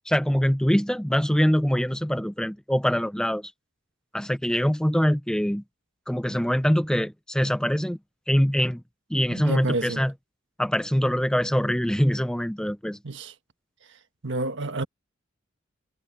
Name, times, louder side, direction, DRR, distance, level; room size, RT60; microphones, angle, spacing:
voice 1, 0.1-3.5 4.1-5.6 6.1-8.0 8.3-8.8 9.1-10.1 10.6-13.0, equal, 5° left, 0.8 m, -23 dB
voice 2, 9.3-10.0 13.0-13.3 13.9-14.0 14.2-14.8, right 2 dB, 65° right, 1.6 m, -29 dB
head